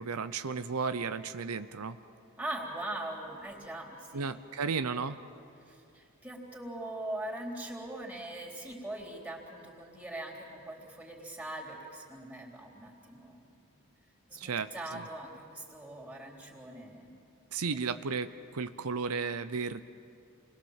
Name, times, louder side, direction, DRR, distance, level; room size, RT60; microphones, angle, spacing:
voice 1, 0.0-2.0 4.1-5.2 14.4-15.0 17.5-19.8, right 5 dB, 85° right, 11 dB, 0.7 m, -34 dB
voice 2, 2.4-4.3 5.6-13.5 14.3-17.1, right 1 dB, 5° right, -2 dB, 3.6 m, -41 dB
29.0 x 21.0 x 7.3 m, 2.6 s
head